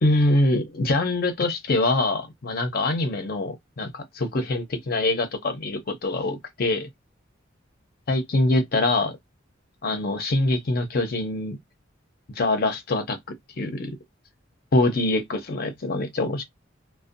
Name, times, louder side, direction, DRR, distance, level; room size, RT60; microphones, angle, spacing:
voice 1, 0.0-6.9 8.1-9.1 9.8-11.6 12.4-14.0 14.7-16.4, left 2 dB, 50° left, 0.6 m, -24 dB
2.5 x 2.1 x 2.5 m
head